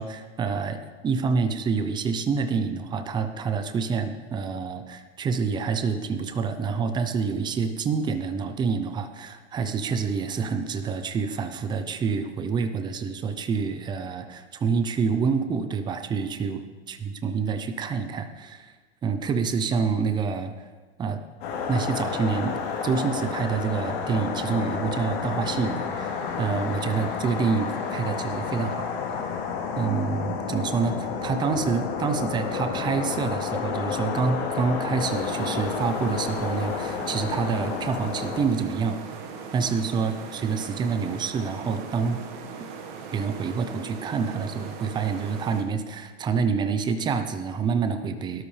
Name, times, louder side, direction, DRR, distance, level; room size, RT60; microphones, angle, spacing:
voice 1, 0.0-16.6 16.9-18.7 19.0-20.5 21.0-21.2 21.7-28.9 29.8-39.0 39.5-42.2 42.6-42.7 43.1-48.5, right 5 dB, 15° right, 9 dB, 0.7 m, -27 dB
sound 1, 21.4-38.4, left 6 dB, 40° left, 3.7 m, -30 dB
sound 2, 35.0-45.6, right 5 dB, 45° right, 1.7 m, -39 dB
18.5 x 12.0 x 3.4 m, 1.4 s
supercardioid pair, 145°, 33 cm